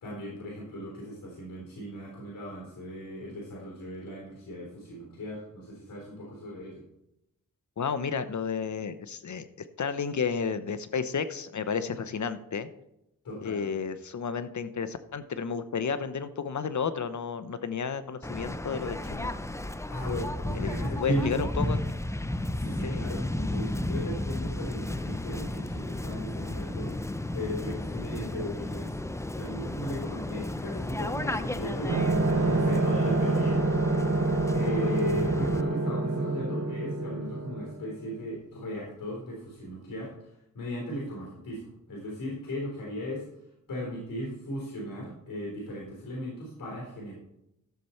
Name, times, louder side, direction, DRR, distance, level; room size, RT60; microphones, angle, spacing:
voice 1, 0.0-6.8 13.2-13.7 19.9-21.5 22.5-28.9 29.3-33.6 34.5-40.1 40.5-43.2 43.7-47.1, equal, 80° left, -3 dB, 3.7 m, -36 dB
voice 2, 7.8-9.5 9.8-12.7 13.4-19.3 20.5-21.8 22.8-23.0, left 6 dB, 60° left, 12 dB, 0.8 m, -32 dB
Waves surf, 18.2-35.6, left 1 dB, 10° left, 0.6 m, -33 dB
sound 1, 31.9-38.2, right 2 dB, 45° right, 1.8 m, -27 dB
13.0 x 6.9 x 4.4 m, 0.85 s
cardioid pair, 55°, 34 cm